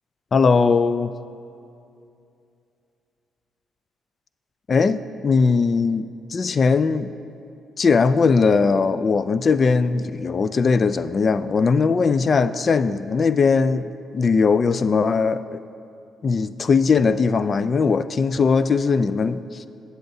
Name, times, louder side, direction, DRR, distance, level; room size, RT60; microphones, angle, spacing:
voice 1, 0.3-1.1 4.7-7.1 7.8-15.6 16.2-19.6, left 5 dB, 40° left, 13 dB, 0.4 m, -19 dB
23.5 x 7.8 x 2.7 m, 2.6 s
cardioid pair, 90°, 0 cm